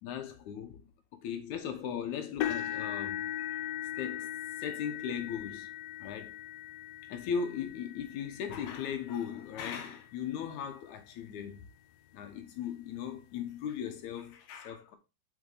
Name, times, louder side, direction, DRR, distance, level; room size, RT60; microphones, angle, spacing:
voice 1, 0.0-0.9 1.1-5.7 6.0-6.4 7.1-11.6 12.1-15.0, left 7 dB, 70° left, 2.0 m, -38 dB
sound 1, 2.4-10.4 11.1-11.3 11.7-11.8 13.2-13.3, left 12 dB, 85° left, 2.4 m, -39 dB
6.0 x 5.4 x 4.0 m
omnidirectional pair, 4.1 m